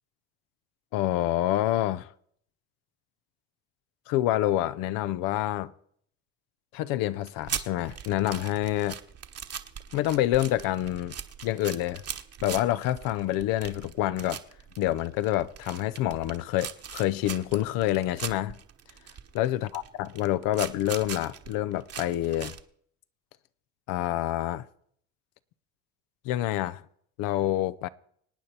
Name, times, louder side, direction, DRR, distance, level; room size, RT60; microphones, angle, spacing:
voice 1, 0.9-2.1 4.1-5.7 6.7-9.0 9.9-11.1 11.4-12.0 12.4-14.4 14.8-18.6 19.3-22.6 23.9-24.6 26.2-26.8 27.2-27.9, left 14 dB, 80° left, 0.7 m, -27 dB
sound 1, 7.2-22.6, right 8 dB, 45° right, 1.2 m, -40 dB
26.0 x 9.0 x 4.3 m
supercardioid pair, 70°, 34 cm